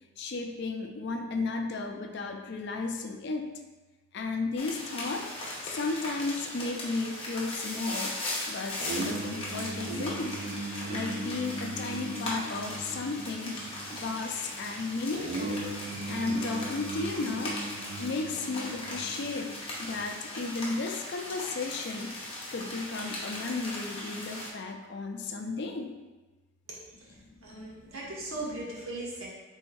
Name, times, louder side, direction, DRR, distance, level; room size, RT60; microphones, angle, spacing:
voice 1, 0.2-3.5 4.1-5.3 5.6-8.2 8.5-10.4 10.9-13.6 13.9-15.7 16.1-17.6 18.0-19.5 19.8-26.0 27.1-28.0, left 3 dB, 55° left, 4 dB, 0.4 m, -34 dB
sound 1, 4.6-24.5, left 1 dB, 25° left, 0.8 m, -39 dB
sound 2, 8.8-20.0, right 2 dB, 50° right, 0.5 m, -39 dB
voice 2, 27.4-29.3, right 2 dB, 85° right, -4 dB, 1.2 m, -38 dB
3.5 x 2.6 x 4.6 m, 1.2 s
head